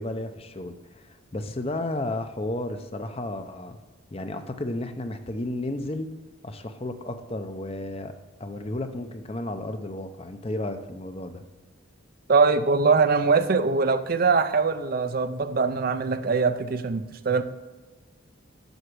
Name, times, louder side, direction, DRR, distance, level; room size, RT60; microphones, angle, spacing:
voice 1, 0.0-3.8 4.1-6.1 6.4-8.1 8.4-11.4, left 1 dB, 30° left, 8 dB, 0.6 m, -33 dB
voice 2, 12.3-17.4, right 4 dB, 45° right, 10 dB, 0.5 m, -22 dB
8.0 x 6.9 x 6.2 m, 1.2 s
head